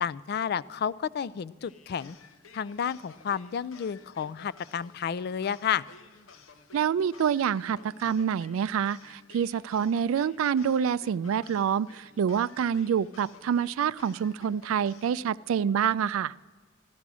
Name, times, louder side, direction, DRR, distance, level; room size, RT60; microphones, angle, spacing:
voice 1, 0.0-2.2 2.5-5.8, left 7 dB, 50° left, 20 dB, 0.3 m, -31 dB
sound 1, 1.6-15.3, left 4 dB, 85° left, 0.9 m, -54 dB
voice 2, 6.7-16.3, right 8 dB, 90° right, 19 dB, 0.3 m, -27 dB
14.5 x 13.0 x 6.1 m, 1.5 s
head